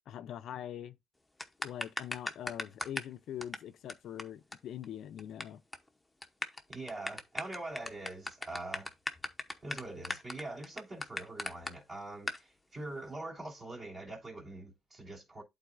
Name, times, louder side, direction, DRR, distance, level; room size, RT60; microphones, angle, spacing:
voice 1, 0.1-1.0 1.6-5.6, left 10 dB, 60° left, 0.5 m, -43 dB
sound 1, 1.4-3.1 3.4-3.6 3.9-4.0 4.2-4.3 4.5-4.6 4.8-5.4 5.7-5.9 6.2-11.7 12.3-12.4, left 2 dB, 5° left, 0.8 m, -37 dB
voice 2, 6.7-8.9 9.6-15.4, right 2 dB, 30° right, 2.9 m, -43 dB
11.5 x 4.0 x 2.5 m
cardioid pair, 135°, 0 cm